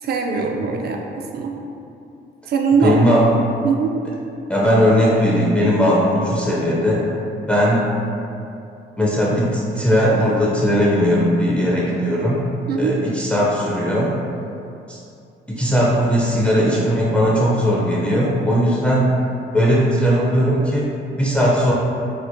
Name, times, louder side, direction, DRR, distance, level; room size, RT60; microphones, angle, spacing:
voice 1, 0.0-1.5 2.5-3.1 3.6-3.9 12.7-13.0, right 5 dB, 55° right, 2 dB, 0.4 m, -21 dB
voice 2, 2.8-3.3 4.5-7.1 7.5-7.9 9.0-12.4 12.8-14.1 14.9-15.0 15.5-19.1 19.5-21.7, equal, 5° left, -6 dB, 0.4 m, -18 dB
4.3 x 2.1 x 2.5 m, 2.6 s
cardioid pair, 90°, 20 cm